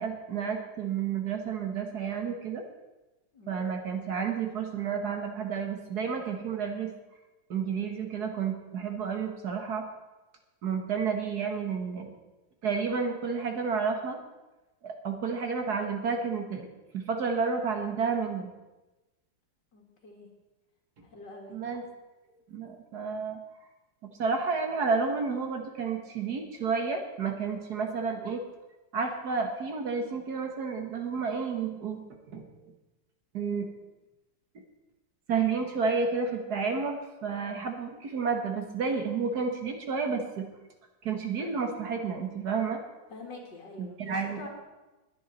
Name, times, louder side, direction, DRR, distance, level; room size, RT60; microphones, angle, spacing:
voice 1, 0.0-2.6 3.5-6.9 7.5-9.8 10.6-12.1 12.6-14.2 14.8-16.7 16.9-18.5 21.5-21.8 22.5-23.4 24.0-28.4 28.9-32.0 32.3-32.4 33.3-33.7 35.3-40.5 41.0-42.8 44.0-44.4, right 5 dB, 55° right, 4 dB, 1.8 m, -31 dB
voice 2, 19.7-20.3 21.0-21.6 43.1-44.5, left 2 dB, 65° left, 0 dB, 3.0 m, -46 dB
20.5 x 9.3 x 4.2 m, 1.1 s
omnidirectional pair, 2.1 m